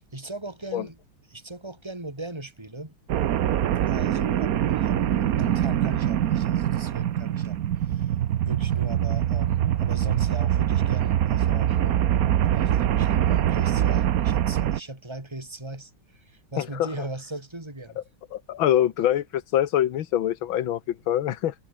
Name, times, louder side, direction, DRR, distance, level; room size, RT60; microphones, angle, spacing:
voice 1, 0.1-1.0 1.3-3.0 3.9-8.2 8.4-12.1 12.5-18.0, right 2 dB, 10° right, 4.1 m, -39 dB
sound 1, 3.1-14.8, right 11 dB, 60° right, 1.0 m, -23 dB
voice 2, 16.6-16.9 18.3-21.5, left 11 dB, 75° left, 1.9 m, -24 dB
omnidirectional pair, 2.2 m